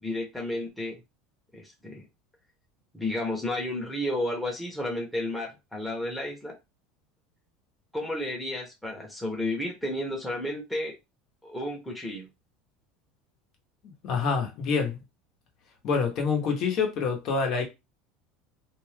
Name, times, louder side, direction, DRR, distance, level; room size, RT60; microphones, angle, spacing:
voice 1, 0.0-1.0 1.5-2.1 2.9-6.5 7.9-10.9 11.4-12.3, left 1 dB, ahead, 0.9 m, -32 dB
voice 2, 13.8-15.0 15.8-17.6, left 5 dB, 50° left, 1.0 m, -27 dB
2.6 x 2.3 x 3.3 m
supercardioid pair, 130°, 0 cm